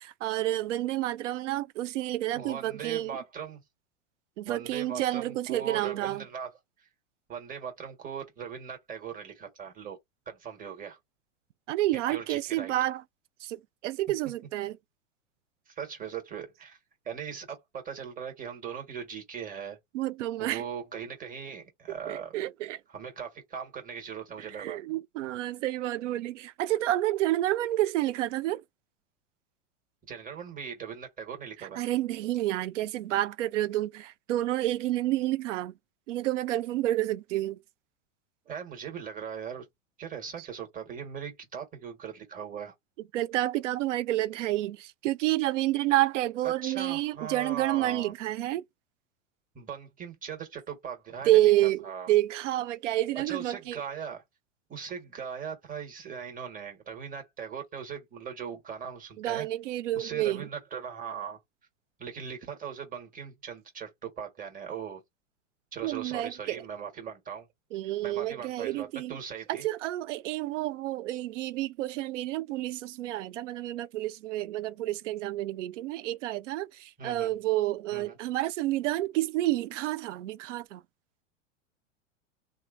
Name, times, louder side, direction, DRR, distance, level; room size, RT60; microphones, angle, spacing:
voice 1, 0.0-3.2 4.4-6.2 11.7-13.0 13.4-14.8 19.9-20.6 22.1-22.8 24.4-28.6 31.8-35.7 36.1-37.6 43.1-48.6 51.2-53.8 59.2-60.5 65.8-66.6 67.7-69.2 69.5-80.8, right 15 dB, 70° right, 0.5 m, -29 dB
voice 2, 2.3-3.6 4.5-6.5 6.8-6.9 7.3-10.0 10.3-11.0 12.1-12.7 15.7-16.8 17.0-19.8 20.4-22.4 22.9-24.8 30.1-31.8 38.5-39.7 40.0-42.7 46.4-48.1 49.5-52.1 53.1-54.2 54.7-59.5 59.9-61.4 62.0-65.0 65.7-67.5 68.0-69.7 77.0-77.3 77.9-78.2, right 7 dB, 20° right, 1.3 m, -39 dB
2.9 x 2.2 x 2.5 m
hypercardioid pair, 100°, 38 cm